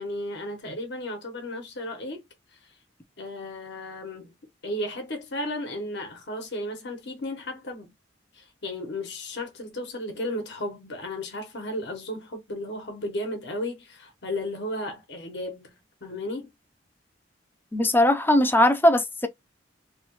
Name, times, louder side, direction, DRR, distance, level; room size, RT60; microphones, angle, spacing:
voice 1, 0.0-2.2 3.2-4.3 4.6-7.9 8.3-15.7 16.0-16.5, left 1 dB, 65° left, 1.0 m, -34 dB
voice 2, 17.7-19.3, left 1 dB, 10° left, 0.5 m, -20 dB
3.0 x 2.3 x 3.0 m
head